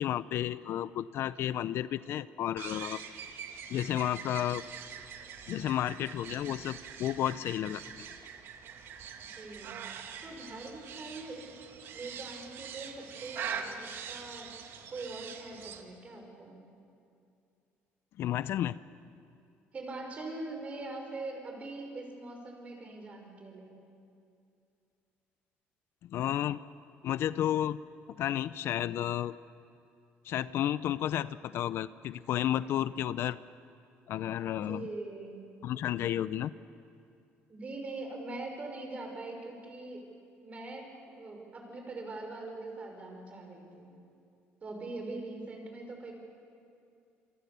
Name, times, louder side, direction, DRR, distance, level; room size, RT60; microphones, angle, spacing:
voice 1, 0.0-3.0 3.7-4.6 5.5-7.8 18.2-18.8 26.0-26.6 27.0-27.8 28.2-29.3 30.2-33.4 34.1-34.9 35.6-36.5, left 11 dB, 65° left, 16 dB, 0.6 m, -32 dB
sound 1, 2.6-15.8, right 7 dB, 60° right, 2.0 m, -44 dB
voice 2, 9.3-9.8 10.2-11.6 11.9-14.6 14.9-16.6 19.7-23.8 34.5-35.5 37.5-40.1 40.4-43.9 44.6-46.1, right 2 dB, 30° right, 2 dB, 5.8 m, -42 dB
27.5 x 24.0 x 6.9 m, 2.5 s
cardioid pair, 120°, 5 cm